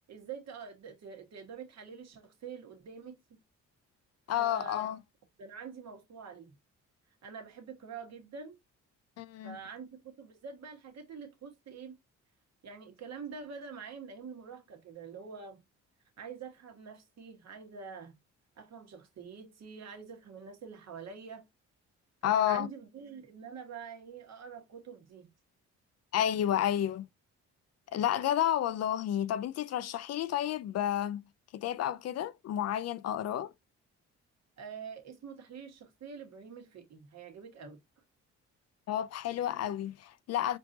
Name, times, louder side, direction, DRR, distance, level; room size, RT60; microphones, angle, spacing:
voice 1, 0.1-3.4 4.3-4.9 5.4-6.5 7.2-8.6 9.4-12.0 12.6-15.6 16.2-18.1 18.6-21.5 22.2-25.3 34.6-37.8, right 6 dB, 60° right, 1.5 m, -46 dB
voice 2, 4.3-5.0 9.2-9.6 22.2-22.7 26.1-27.0 27.9-31.2 31.5-33.5 38.9-40.6, left 11 dB, 55° left, 0.4 m, -31 dB
4.5 x 2.7 x 2.7 m
cardioid pair, 90°, 30 cm